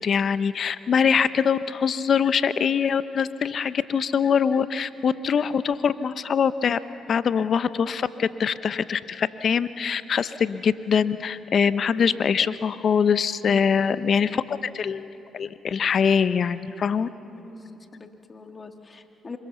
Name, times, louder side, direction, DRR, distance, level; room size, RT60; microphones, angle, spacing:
voice 1, 0.0-6.8 7.1-15.1 15.3-17.1, left 7 dB, 55° left, 14 dB, 0.8 m, -23 dB
voice 2, 14.1-14.4 17.3-19.4, left 4 dB, 35° left, 5 dB, 2.0 m, -43 dB
27.0 x 23.5 x 7.0 m, 3.0 s
supercardioid pair, 60°, 0 cm